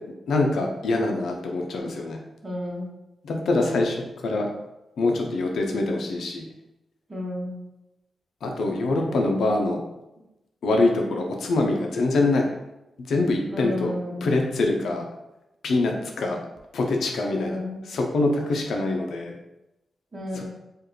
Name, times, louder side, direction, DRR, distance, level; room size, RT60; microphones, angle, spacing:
voice 1, 0.3-2.2 3.2-4.5 5.0-6.5 8.4-9.8 10.6-12.4 13.1-13.9 14.2-15.0 15.6-16.4 16.7-17.6 17.9-19.3 20.3-20.4, left 2 dB, 85° left, 2 dB, 0.7 m, -24 dB
voice 2, 2.4-2.9 3.7-3.9 7.1-7.6 8.9-9.0 13.5-14.4 17.3-17.8 20.1-20.5, left 1 dB, 25° right, -2 dB, 1.1 m, -32 dB
4.7 x 2.6 x 3.1 m, 0.93 s
cardioid pair, 90°, 0 cm